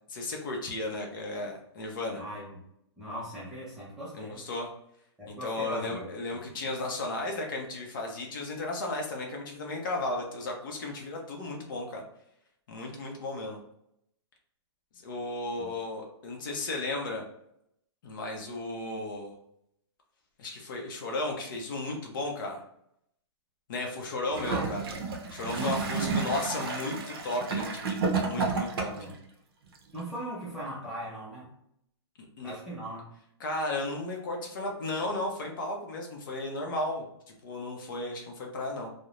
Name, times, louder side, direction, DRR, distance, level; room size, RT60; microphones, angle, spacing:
voice 1, 0.1-2.2 4.1-4.7 5.3-12.0 12.7-13.6 15.0-17.2 18.0-19.3 20.4-22.6 23.7-24.8 25.3-28.9 32.4-32.6 33.4-38.9, left 2 dB, 50° left, 1 dB, 0.6 m, -34 dB
voice 2, 2.2-2.6 3.0-4.4 5.2-6.1 6.5-6.6 15.6-15.7 24.5-24.7 25.5-26.0 28.8-29.2 29.9-31.5 32.4-33.0, right 1 dB, 5° right, -9 dB, 0.5 m, -39 dB
Gurgling / Toilet flush, 24.3-29.2 30.0-30.1, right 4 dB, 55° right, 0.5 m, -31 dB
2.4 x 2.0 x 2.9 m, 0.75 s
hypercardioid pair, 165°, 14 cm